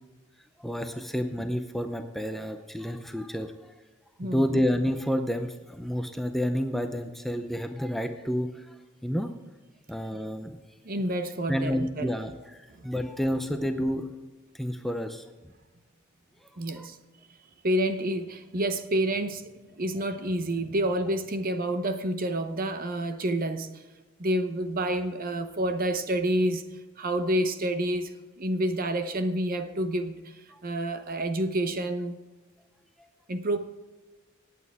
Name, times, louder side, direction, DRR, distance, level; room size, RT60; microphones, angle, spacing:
voice 1, 0.6-3.7 4.2-8.7 9.0-9.3 9.9-10.6 11.5-14.1 14.5-15.3 16.7-16.9 30.5-30.6, equal, ahead, 0.6 m, -30 dB
voice 2, 4.2-4.6 10.1-10.2 10.8-12.1 12.8-12.9 16.6-17.0 17.6-19.5 19.8-23.7 24.2-26.6 27.0-28.1 28.4-30.3 30.6-32.1 33.3-33.6, right 1 dB, 45° right, 0.9 m, -28 dB
18.0 x 8.7 x 3.6 m
head